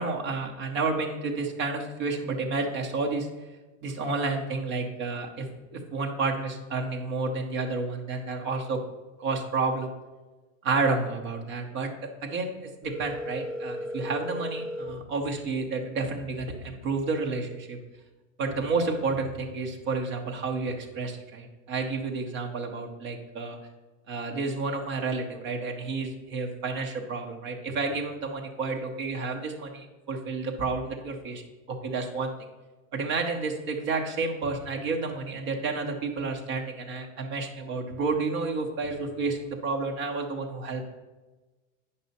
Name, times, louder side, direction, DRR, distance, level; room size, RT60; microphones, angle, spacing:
voice 1, 0.0-3.3 3.8-8.8 9.2-9.9 10.6-11.9 12.2-17.8 18.4-23.6 24.1-31.4 31.7-32.3 32.9-40.8, right 3 dB, 20° right, 2 dB, 0.5 m, -30 dB
Telephone, 12.8-14.8, equal, 15° left, 2.8 m, -35 dB
9.2 x 5.4 x 4.0 m, 1.2 s
supercardioid pair, 175°, 40 cm